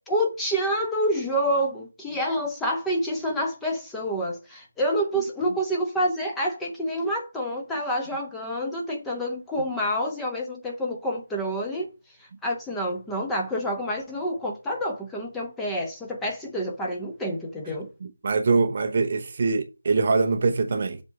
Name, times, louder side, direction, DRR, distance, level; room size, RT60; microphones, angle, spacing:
voice 1, 0.1-11.9 12.4-17.9, equal, 5° left, 0.9 m, -28 dB
voice 2, 18.0-21.0, right 4 dB, 35° right, 0.7 m, -23 dB
7.3 x 3.7 x 6.4 m
figure-of-eight pair, 160°, 0 cm